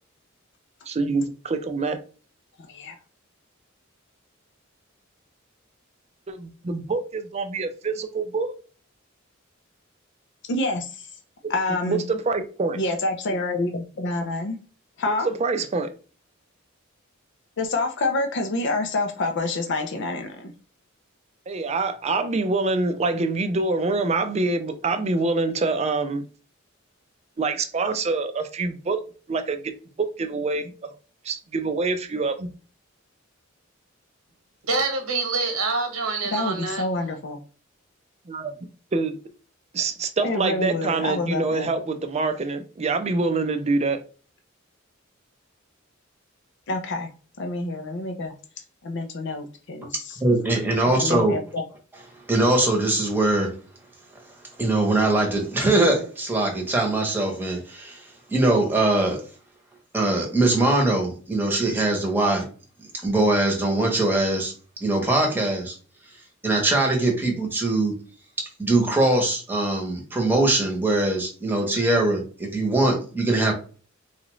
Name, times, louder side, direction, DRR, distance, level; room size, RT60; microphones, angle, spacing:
voice 1, 0.9-2.0 6.3-8.5 11.9-12.8 15.2-15.9 21.5-26.2 27.4-29.0 29.3-30.9 31.2-32.5 38.3-38.5 38.9-39.2 39.7-44.0, right 3 dB, 30° right, 0.4 m, -25 dB
voice 2, 2.6-3.0 10.5-11.1 11.5-12.0 12.7-14.6 15.0-15.3 17.6-20.5 36.2-37.4 40.2-41.7 46.7-47.1 47.4-48.3 48.8-50.2 51.0-51.6, left 2 dB, 60° left, 0.5 m, -27 dB
voice 3, 34.7-36.8, right 3 dB, 90° right, 1.1 m, -26 dB
voice 4, 50.2-51.3 52.3-53.5 54.6-58.0 58.3-59.2 59.9-62.5 63.0-64.5 64.8-65.7 66.4-67.9 68.4-73.5, right 2 dB, 10° right, 1.0 m, -22 dB
4.0 x 2.4 x 3.0 m
head